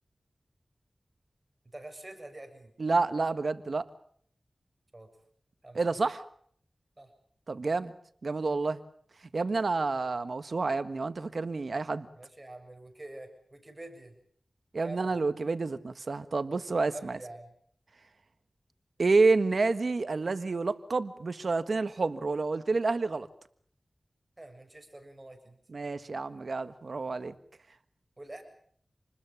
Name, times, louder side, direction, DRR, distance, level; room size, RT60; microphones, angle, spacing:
voice 1, 1.7-2.7 4.9-5.1 5.6-6.0 7.0-7.1 12.2-14.1 14.8-15.1 16.9-17.5 24.4-25.6 28.2-28.4, right 1 dB, 30° right, 7 dB, 7.1 m, -46 dB
voice 2, 2.8-3.8 5.7-6.2 7.5-7.9 8.2-8.8 9.3-12.1 14.7-17.2 19.0-23.3 25.7-27.3, right 3 dB, 70° right, 12 dB, 1.5 m, -29 dB
28.0 x 20.5 x 7.2 m, 0.62 s
wide cardioid pair, 55°, 0 cm